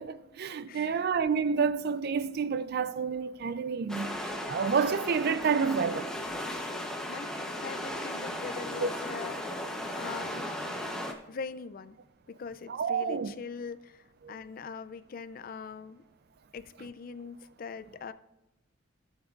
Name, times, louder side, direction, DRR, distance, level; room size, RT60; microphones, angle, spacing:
voice 1, 0.0-4.2 4.5-6.1 8.8-8.9 12.7-13.3 14.2-14.3, right 6 dB, 55° right, 0.4 m, -29 dB
voice 2, 0.7-1.1 4.9-5.0 7.1-9.3 10.0-10.6 11.3-12.0 12.3-16.0 16.5-18.1, left 5 dB, 50° left, 0.4 m, -42 dB
sound 1, 3.9-11.1, left 1 dB, 5° left, 0.8 m, -36 dB
16.0 x 7.2 x 2.5 m
head